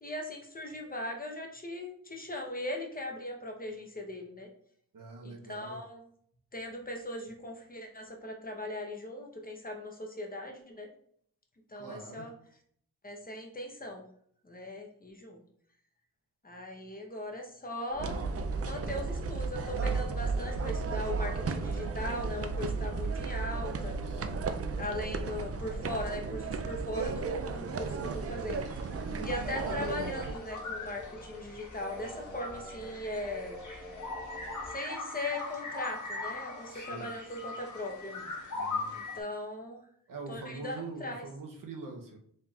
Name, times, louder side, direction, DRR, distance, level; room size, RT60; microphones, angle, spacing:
voice 1, 0.0-4.5 5.2-6.0 6.5-10.9 11.7-12.3 13.0-14.0 14.4-15.4 16.4-18.2 18.6-24.0 24.8-28.7 29.2-33.6 34.7-38.3 38.9-39.8 40.3-41.2, left 1 dB, 25° left, 1 dB, 0.9 m, -39 dB
voice 2, 4.9-5.8 11.8-12.3 24.0-24.5 36.7-37.1 38.5-39.0 40.1-42.2, right 3 dB, 65° right, 1 dB, 0.9 m, -44 dB
sound 1, 17.9-34.7, equal, 5° left, 1.4 m, -46 dB
sound 2, 18.0-30.3, right 4 dB, 40° right, 0.4 m, -34 dB
sound 3, 27.7-39.2, left 3 dB, 55° left, 1.4 m, -41 dB
4.2 x 3.8 x 2.4 m, 0.65 s
cardioid pair, 80°, 36 cm